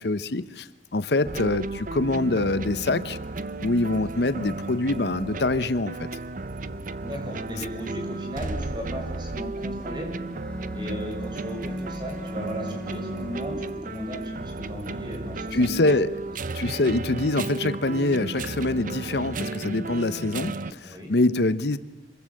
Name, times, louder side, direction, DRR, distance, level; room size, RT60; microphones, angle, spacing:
voice 1, 0.0-3.2 3.6-6.1 15.5-16.1 16.5-21.8, left 2 dB, 65° left, 14 dB, 0.9 m, -25 dB
sound 1, 1.2-20.7, right 3 dB, 50° right, 0.8 m, -34 dB
voice 2, 7.0-10.1 10.7-15.8 20.8-21.1, equal, 25° right, 1 dB, 6.9 m, -36 dB
Bowed string instrument, 9.8-14.2, equal, 5° left, 1.2 m, -40 dB
25.5 x 22.0 x 7.7 m, 1.1 s
head